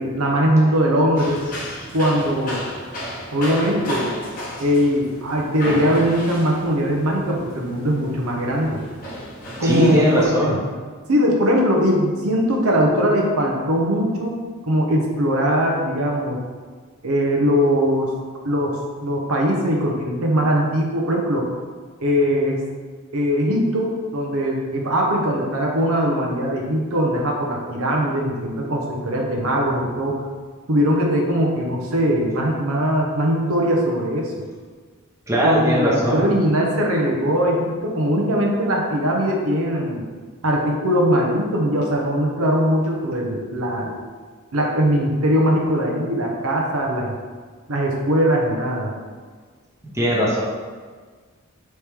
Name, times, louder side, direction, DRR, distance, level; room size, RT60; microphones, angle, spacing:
voice 1, 0.0-1.4 1.9-2.6 3.3-4.1 4.6-8.8 9.6-10.4 11.1-14.4 14.6-16.4 17.0-18.1 18.4-21.5 22.0-22.6 23.1-30.2 30.7-34.3 35.4-40.0 40.4-44.0 44.5-47.1 47.7-48.9, equal, 80° right, -1 dB, 0.8 m, -20 dB
sound 1, 1.2-10.3, equal, 40° left, 1.0 m, -33 dB
voice 2, 9.6-10.5 35.3-36.2 49.9-50.4, equal, 15° right, -5 dB, 0.8 m, -19 dB
4.3 x 3.1 x 3.5 m, 1.5 s
head